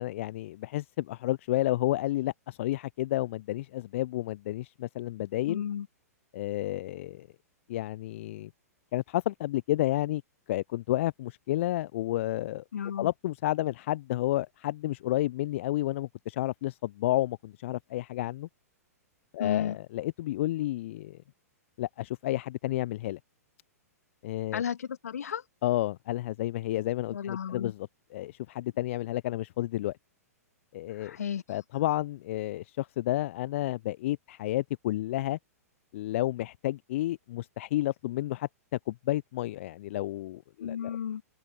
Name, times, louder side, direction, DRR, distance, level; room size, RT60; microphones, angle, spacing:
voice 1, 0.0-5.6 6.3-7.3 7.7-8.5 8.9-10.2 10.5-12.6 13.0-18.5 19.3-21.2 21.8-23.2 24.2-24.6 25.6-27.9 28.1-30.0 30.7-31.2 31.5-35.4 35.9-38.5 38.9-40.9, left 15 dB, 50° left, 0.4 m, -31 dB
voice 2, 5.5-5.9 12.7-13.1 19.4-19.8 24.5-25.4 27.1-27.7 30.9-31.6 40.6-41.2, left 8 dB, 70° left, 1.5 m, -33 dB
figure-of-eight pair, 110°, 9 cm